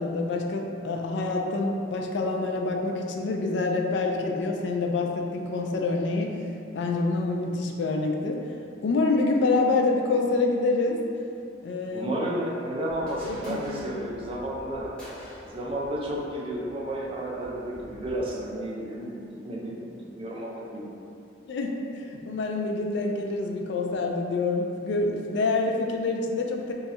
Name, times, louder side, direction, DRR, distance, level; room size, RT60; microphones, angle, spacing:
voice 1, 0.0-6.4 6.7-8.4 8.8-11.0 11.6-12.2 13.2-13.6 13.9-14.0 21.5-26.7, left 3 dB, 65° left, 1 dB, 0.3 m, -26 dB
voice 2, 11.9-14.9 15.4-20.9, right 1 dB, 30° right, -4 dB, 0.5 m, -32 dB
sound 1, 12.9-18.2, equal, 5° left, 0.8 m, -47 dB
2.7 x 2.3 x 4.1 m, 2.5 s
head